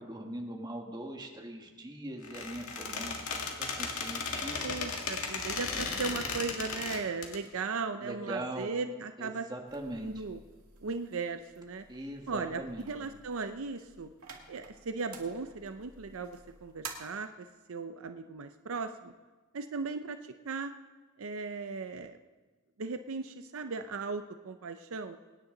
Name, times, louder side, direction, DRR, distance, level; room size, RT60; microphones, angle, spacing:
voice 1, 0.0-4.7 5.7-6.0 8.0-8.7 9.2-10.2 11.9-12.9, right 1 dB, 20° right, 1 dB, 1.7 m, -41 dB
Squeak, 2.2-7.4, left 4 dB, 80° left, 1.9 m, -36 dB
voice 2, 4.6-9.5 10.0-10.4 10.8-11.8 12.3-14.1 14.5-19.1 19.5-20.7 21.2-22.2 22.8-25.2, right 4 dB, 70° right, 8 dB, 0.6 m, -37 dB
sound 1, 9.7-16.9, right 6 dB, 85° right, 2.2 m, -51 dB
24.0 x 10.0 x 3.9 m, 1.3 s
head